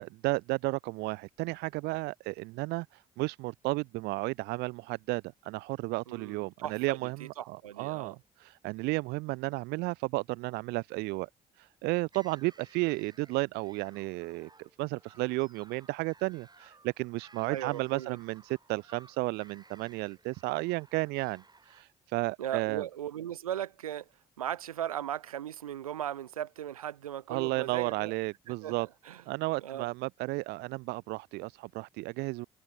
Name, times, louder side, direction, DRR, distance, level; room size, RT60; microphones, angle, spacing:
voice 1, 0.0-11.3 11.6-22.8 27.3-28.9 29.3-32.5, right 23 dB, 65° right, 0.9 m, -33 dB
voice 2, 6.1-7.1 7.4-8.2 17.5-18.2 22.4-24.1 24.4-28.1 28.6-29.2 29.6-29.9, right 11 dB, 85° right, 1.3 m, -37 dB
sound 1, 12.1-21.8, right 3 dB, 25° right, 4.5 m, -59 dB
figure-of-eight pair, 45°, 18 cm